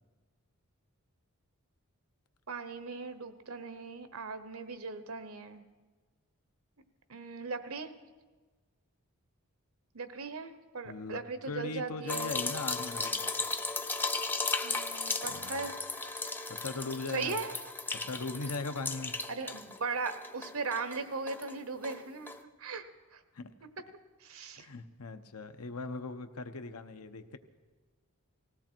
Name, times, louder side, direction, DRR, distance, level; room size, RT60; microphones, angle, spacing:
voice 1, 2.5-5.6 7.1-7.9 9.9-12.3 14.6-15.7 17.1-17.5 19.3-22.3 22.6-22.8 23.1-23.2 24.2-24.7, right 4 dB, 75° right, 11 dB, 1.0 m, -38 dB
voice 2, 10.8-11.2 11.5-13.4 15.3-15.7 16.5-17.4 18.1-19.1 23.3-23.5 24.6-27.4, left 3 dB, 90° left, 9 dB, 0.9 m, -39 dB
sound 1, 12.1-19.8 20.1-21.5 21.8-22.0 22.3-22.4, left 3 dB, 10° left, 0.5 m, -36 dB
19.0 x 16.5 x 4.5 m, 1.3 s
head